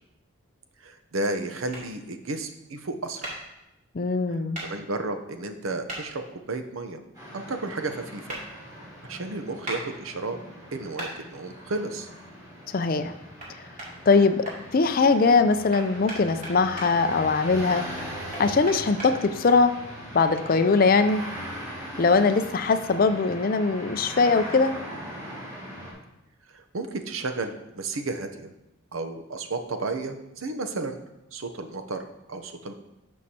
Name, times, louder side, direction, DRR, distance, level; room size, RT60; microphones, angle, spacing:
voice 1, 0.8-3.3 4.6-7.0 7.3-8.4 9.0-10.4 10.7-12.1 26.5-28.5 28.9-31.0 31.3-32.0 32.3-32.7, right 3 dB, 75° right, 7 dB, 0.7 m, -32 dB
sound 1, 1.7-1.8 3.2-3.4 4.5-4.7 5.9-6.0 8.3-8.4 9.6-9.8 11.0-11.1 13.4-13.5 13.8-14.6 15.7-16.9 18.0-19.1, right 1 dB, 35° right, 2.6 m, -36 dB
voice 2, 3.9-4.6 12.7-13.1 14.1-14.4 14.7-17.8 18.4-19.7 20.1-21.2 22.0-24.7, left 4 dB, 45° left, 10 dB, 0.4 m, -21 dB
sound 2, 7.1-25.9, equal, 15° right, 3.4 m, -40 dB
11.5 x 6.4 x 2.9 m, 0.91 s
head